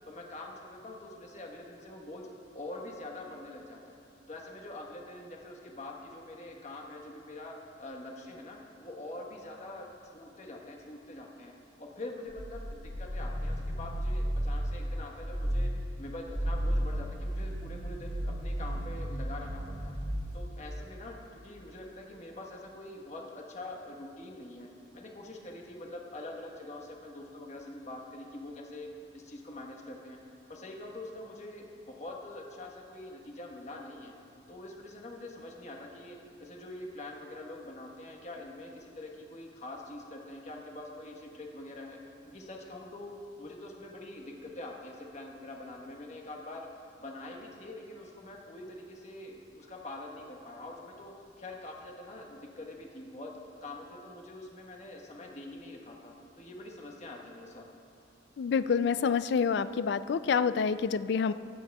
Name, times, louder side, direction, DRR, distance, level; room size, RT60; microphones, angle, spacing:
voice 1, 0.1-2.3 2.5-4.0 4.3-11.5 11.8-15.7 16.0-20.0 20.3-24.7 24.9-28.9 29.1-30.2 30.5-34.1 34.5-42.0 42.3-46.7 47.0-53.3 53.6-57.6, left 2 dB, 40° left, 0 dB, 1.3 m, -44 dB
sound 1, 12.4-15.0 15.3-15.8 16.2-20.5, equal, 40° right, 2.4 m, -33 dB
voice 2, 58.4-61.3, left 6 dB, 65° left, 14 dB, 0.3 m, -27 dB
22.5 x 9.1 x 2.3 m, 2.7 s
head